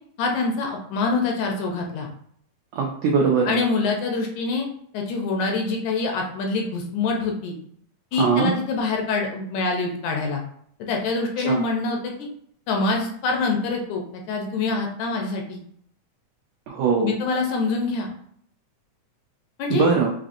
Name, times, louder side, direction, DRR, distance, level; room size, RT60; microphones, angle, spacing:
voice 1, 0.2-2.1 3.5-4.7 4.9-7.6 8.1-10.4 10.8-12.1 12.7-15.6 17.0-18.1 19.6-19.8, left 3 dB, 75° left, 1 dB, 1.9 m, -25 dB
voice 2, 2.7-3.6 8.1-8.5 11.4-11.6 16.7-17.1 19.7-20.1, right 5 dB, 85° right, 0 dB, 1.5 m, -21 dB
5.5 x 2.7 x 2.5 m, 0.66 s
omnidirectional pair, 3.6 m